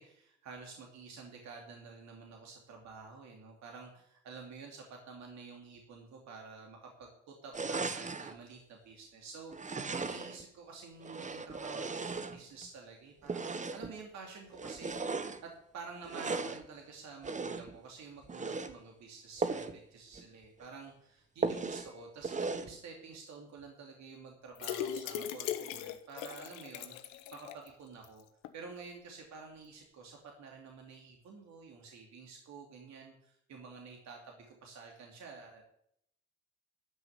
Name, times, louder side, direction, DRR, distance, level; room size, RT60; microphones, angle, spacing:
voice 1, 0.0-28.2 28.5-35.6, right 4 dB, 60° right, 2 dB, 2.8 m, -50 dB
sound 1, 7.5-8.4 9.5-10.4 11.0-12.7 13.2-14.0 14.5-15.4 16.0-16.7 17.2-17.8 18.2-18.7 19.4-19.8 20.1-20.2 20.6-20.7 21.4-21.9 22.2-22.7, right 4 dB, 25° right, 1.3 m, -37 dB
sound 2, 24.6-27.7 28.0-28.1 28.4-28.5, left 10 dB, 80° left, 1.2 m, -39 dB
13.0 x 6.3 x 9.4 m, 0.73 s
hypercardioid pair, 60°, 31 cm